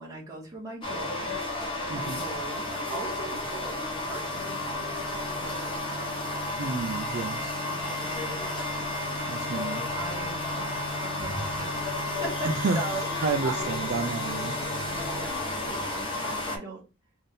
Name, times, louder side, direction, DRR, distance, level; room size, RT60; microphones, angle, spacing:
voice 1, 0.0-1.4 1.9-5.8 6.3-6.7 7.6-8.9 9.9-10.7 11.0-13.5 15.0-16.8, right 2 dB, 15° right, -5 dB, 1.6 m, -40 dB
sound 1, 0.8-16.6, left 2 dB, 25° left, 1.0 m, -32 dB
voice 2, 1.9-2.2 6.6-7.6 9.3-9.9 12.5-12.8 13.2-14.6, right 4 dB, 50° right, 5 dB, 0.3 m, -30 dB
sound 2, 3.3-15.3, equal, 80° right, 1.1 m, -40 dB
3.5 x 2.7 x 3.6 m, 0.29 s
head